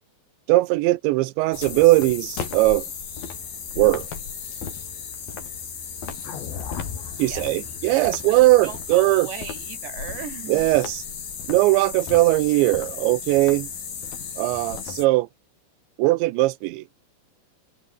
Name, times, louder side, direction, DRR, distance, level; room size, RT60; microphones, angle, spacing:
voice 1, 0.5-2.9 3.8-4.1 7.2-9.3 10.5-11.0 11.5-13.7 14.4-15.3 16.0-16.8, right 19 dB, 90° right, 3.1 m, -19 dB
sound 1, 1.5-15.1, left 6 dB, 55° left, 6.0 m, -34 dB
sound 2, 6.2-10.5, left 8 dB, 75° left, 5.6 m, -40 dB
voice 2, 7.3-10.8, right 9 dB, 75° right, 5.3 m, -38 dB
omnidirectional pair, 5.0 m